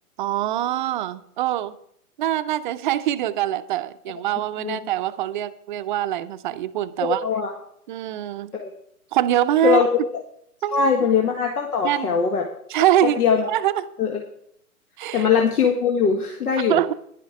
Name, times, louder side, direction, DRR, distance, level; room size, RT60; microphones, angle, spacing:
voice 1, 0.2-1.8 2.2-7.2 7.9-8.5 9.1-9.8 10.6-10.9 11.8-12.2 12.7-13.2 13.5-13.9 15.0-15.3 16.7-16.9, right 12 dB, 35° right, 11 dB, 0.6 m, -24 dB
voice 2, 7.0-7.5 8.5-8.7 9.6-9.9 10.7-12.5 13.2-13.5 14.0-14.2 15.1-16.8, left 6 dB, 75° left, 2 dB, 1.8 m, -21 dB
11.0 x 10.5 x 4.7 m, 0.70 s
hypercardioid pair, 130°, 45 cm